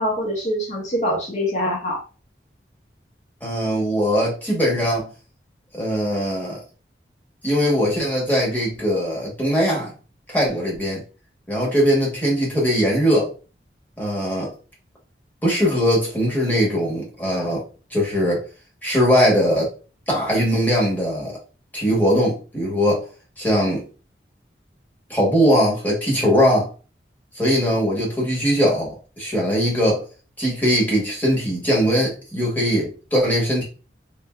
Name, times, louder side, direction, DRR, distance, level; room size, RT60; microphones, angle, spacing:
voice 1, 0.0-2.0, equal, 40° left, 1.0 m, -24 dB
voice 2, 3.4-5.1 5.7-6.6 7.4-9.9 10.3-11.0 11.5-13.3 14.0-14.5 15.4-17.6 17.9-18.4 18.8-19.7 20.1-21.4 21.7-23.0 23.4-23.8 25.1-26.7 27.3-30.0 30.4-33.6, equal, 10° left, 1.0 m, -20 dB
3.4 x 2.5 x 2.2 m
head